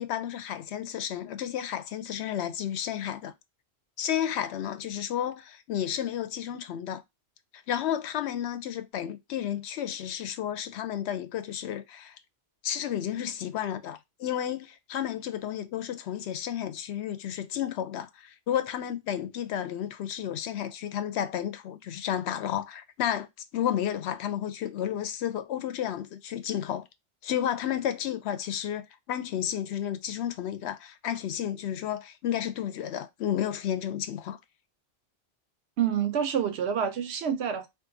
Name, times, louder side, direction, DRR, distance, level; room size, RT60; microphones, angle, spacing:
voice 1, 0.0-3.3 4.0-7.0 7.7-12.2 12.6-23.3 23.5-26.8 27.2-34.4, left 10 dB, 90° left, 0.8 m, -32 dB
voice 2, 35.8-37.7, right 8 dB, 85° right, 0.9 m, -27 dB
3.7 x 2.6 x 2.5 m
omnidirectional pair, 1.1 m